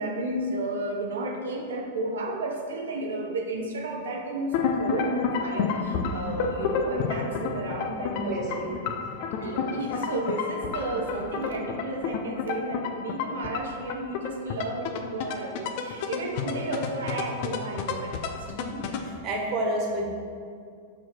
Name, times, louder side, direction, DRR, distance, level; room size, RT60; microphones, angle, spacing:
voice 1, 0.0-8.6 9.4-18.4, right 2 dB, 75° right, 1 dB, 0.7 m, -32 dB
sound 1, 4.5-19.2, left 5 dB, 55° left, 0.5 m, -31 dB
voice 2, 8.1-8.7 18.4-20.1, right 1 dB, 40° right, 0 dB, 1.5 m, -30 dB
5.9 x 4.7 x 4.4 m, 2.2 s
figure-of-eight pair, 95°, 0 cm